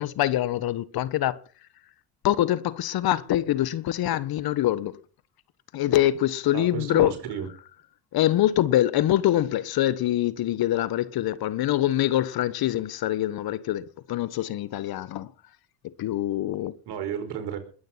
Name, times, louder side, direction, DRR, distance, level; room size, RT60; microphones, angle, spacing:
voice 1, 0.0-1.4 2.2-5.0 5.7-7.1 8.1-15.3 15.8-16.8, left 13 dB, 55° left, 1.2 m, -24 dB
voice 2, 6.5-7.5 16.9-17.6, right 8 dB, 60° right, 5.0 m, -32 dB
21.5 x 9.3 x 5.8 m
hypercardioid pair, 65°, 45 cm